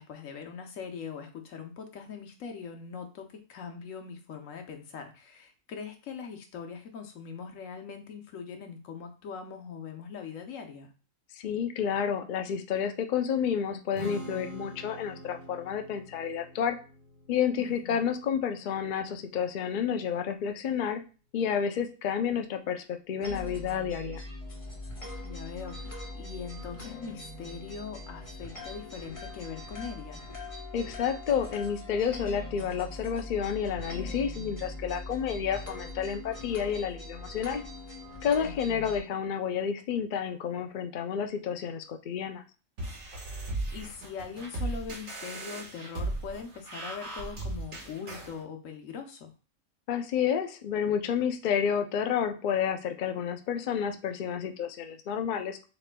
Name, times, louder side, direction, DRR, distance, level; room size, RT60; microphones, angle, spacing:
voice 1, 0.0-10.9 17.6-18.1 25.2-30.2 38.4-39.0 43.3-43.4 43.7-49.3, left 6 dB, 75° left, 4 dB, 1.2 m, -41 dB
voice 2, 11.4-16.8 17.3-21.0 21.3-24.2 30.7-37.6 38.2-42.4 49.9-55.6, left 7 dB, 60° left, 6 dB, 0.5 m, -30 dB
Strum, 13.9-20.2, equal, 40° right, 1.0 m, -46 dB
sound 1, 23.2-39.0, left 2 dB, 25° left, 1.1 m, -41 dB
sound 2, 42.8-48.3, right 2 dB, 75° right, 1.8 m, -36 dB
6.7 x 3.2 x 2.2 m, 0.35 s
omnidirectional pair, 1.4 m